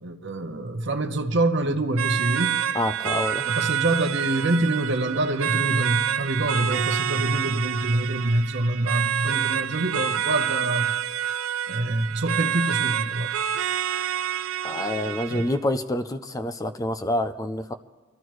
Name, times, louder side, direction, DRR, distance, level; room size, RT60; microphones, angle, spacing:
voice 1, 0.0-2.6 3.5-10.9 11.7-13.3 15.3-15.5, right 1 dB, 60° right, 0.9 m, -25 dB
sound 1, 2.0-15.6, right 9 dB, 85° right, 0.4 m, -27 dB
voice 2, 2.7-3.5 14.6-17.7, left 1 dB, 15° left, 0.4 m, -27 dB
24.5 x 13.0 x 3.1 m
head